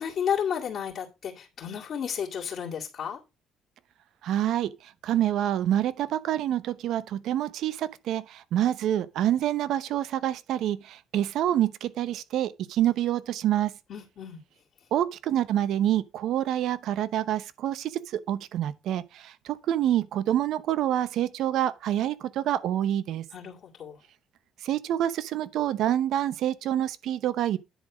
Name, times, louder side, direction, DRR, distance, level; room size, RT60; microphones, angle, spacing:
voice 1, 0.0-3.2 13.9-14.4 23.3-24.0, left 8 dB, 60° left, 2.3 m, -32 dB
voice 2, 4.2-13.8 14.9-23.2 24.6-27.6, right 11 dB, 75° right, 0.8 m, -27 dB
10.0 x 4.1 x 6.1 m
supercardioid pair, 65°, 0 cm